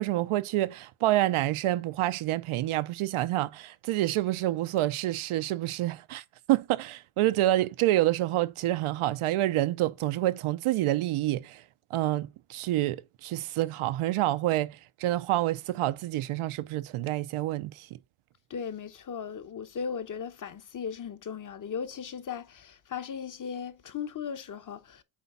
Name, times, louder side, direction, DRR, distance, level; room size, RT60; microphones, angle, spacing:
voice 1, 0.0-11.6 11.9-17.9, right 15 dB, 85° right, 0.7 m, -28 dB
voice 2, 18.5-25.0, left 7 dB, 40° left, 0.9 m, -37 dB
8.4 x 3.5 x 5.5 m
cardioid pair, 130°, 49 cm